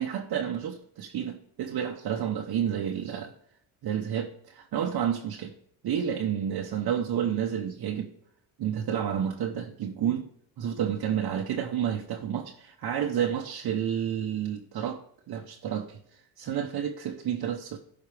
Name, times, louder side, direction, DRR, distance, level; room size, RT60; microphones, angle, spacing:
voice 1, 0.0-3.3 3.8-5.5 5.8-8.1 8.6-10.2 10.6-15.0 15.3-16.0 16.4-17.8, right 9 dB, 50° right, 0.9 m, -30 dB
11.5 x 4.7 x 3.3 m
cardioid pair, 100°, 48 cm